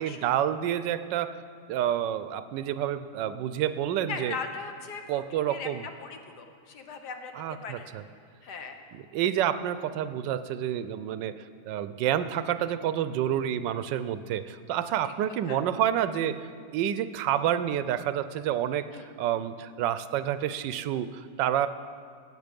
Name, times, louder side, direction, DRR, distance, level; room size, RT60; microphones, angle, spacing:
voice 1, 0.0-1.4 1.7-4.3 5.1-5.8 7.4-8.0 8.9-11.3 11.6-21.7, right 10 dB, 90° right, 12 dB, 1.3 m, -29 dB
voice 2, 4.1-5.7 6.0-7.8 8.4-8.8 15.5-15.6 18.9-19.1, left 5 dB, 70° left, 5 dB, 1.6 m, -39 dB
16.0 x 9.0 x 5.2 m, 2.1 s
omnidirectional pair, 1.9 m